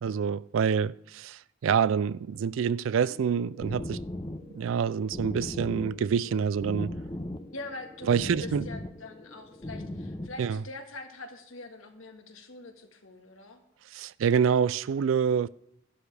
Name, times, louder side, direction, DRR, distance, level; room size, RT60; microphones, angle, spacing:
voice 1, 0.0-4.0 4.5-6.9 8.1-8.6 10.4-10.6 13.9-15.5, right 7 dB, 70° right, 0.3 m, -27 dB
sound 1, 3.1-10.3, left 1 dB, 20° left, 0.7 m, -39 dB
voice 2, 7.5-13.6, left 2 dB, 85° left, 1.8 m, -44 dB
13.0 x 11.5 x 3.4 m
head